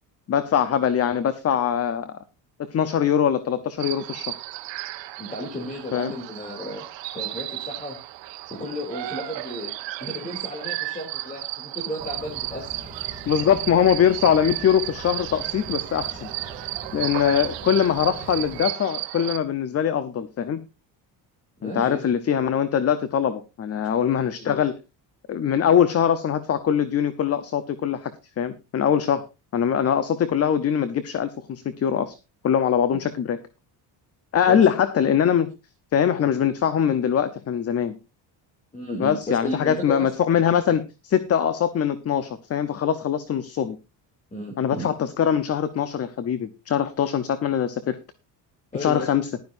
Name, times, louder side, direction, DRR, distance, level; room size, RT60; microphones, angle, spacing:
voice 1, 0.3-2.1 2.6-4.3 5.9-6.1 13.3-16.3 16.9-20.6 21.6-24.7 25.3-28.1 28.4-29.2 29.5-32.2 32.4-33.4 34.3-35.5 35.9-38.0 39.0-43.8 44.6-48.0 48.8-49.3, left 8 dB, 35° left, 14 dB, 0.8 m, -22 dB
sound 1, 3.8-19.4, right 17 dB, 75° right, 1.1 m, -34 dB
voice 2, 5.2-6.8 7.1-8.0 8.5-9.7 10.0-12.7 21.6-22.1 24.4-24.6 34.5-34.7 38.7-40.1 44.3-44.9 48.7-49.1, left 1 dB, 15° left, 1 dB, 3.0 m, -33 dB
sound 2, 12.0-18.6, right 2 dB, 20° right, 2.7 m, -42 dB
15.0 x 12.0 x 2.6 m, 0.26 s
cardioid pair, 140°, 44 cm